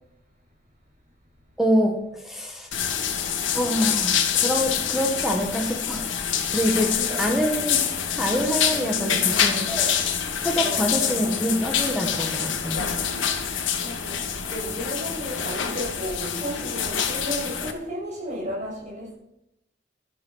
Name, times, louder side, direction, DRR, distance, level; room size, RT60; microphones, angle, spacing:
voice 1, 1.6-2.7 3.5-6.1 6.4-6.9 7.2-7.8 8.1-9.9 10.4-12.8, equal, ahead, 1 dB, 1.5 m, -25 dB
sound 1, 2.7-17.7, left 8 dB, 90° left, 1.7 m, -26 dB
voice 2, 6.8-7.2 8.9-9.3 10.6-11.2 13.4-19.1, equal, 40° right, -3 dB, 6.6 m, -34 dB
13.0 x 12.0 x 5.6 m, 0.86 s
head